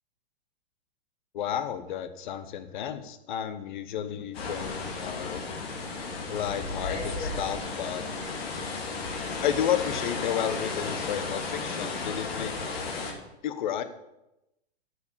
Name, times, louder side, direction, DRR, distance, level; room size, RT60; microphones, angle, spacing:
voice 1, 1.3-5.4 6.3-8.0 9.4-12.5 13.4-13.8, left 10 dB, 50° left, 11 dB, 1.1 m, -32 dB
sound 1, 4.3-13.1, left 3 dB, 70° left, 3.2 m, -34 dB
10.5 x 7.4 x 7.0 m, 0.91 s
hypercardioid pair, 155°, 32 cm